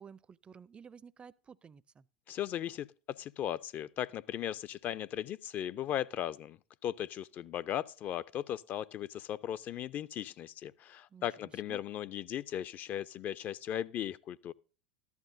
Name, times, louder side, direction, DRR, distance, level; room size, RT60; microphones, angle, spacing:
voice 1, 0.0-2.0 11.1-11.8, right 6 dB, 20° right, 0.4 m, -53 dB
voice 2, 2.3-14.5, left 11 dB, 40° left, 0.4 m, -37 dB
14.0 x 12.0 x 2.7 m
figure-of-eight pair, 80°, 5 cm